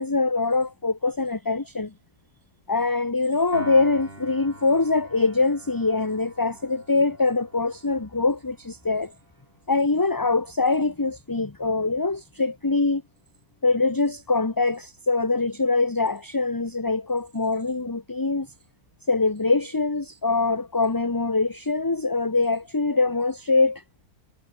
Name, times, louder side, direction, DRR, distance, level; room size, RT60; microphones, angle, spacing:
voice 1, 0.0-1.9 2.7-9.1 9.7-13.0 13.6-18.5 19.1-23.8, left 3 dB, 15° left, 1.0 m, -23 dB
Piano, 3.5-9.9, right 1 dB, 35° right, 6.9 m, -45 dB
omnidirectional pair, 1.7 m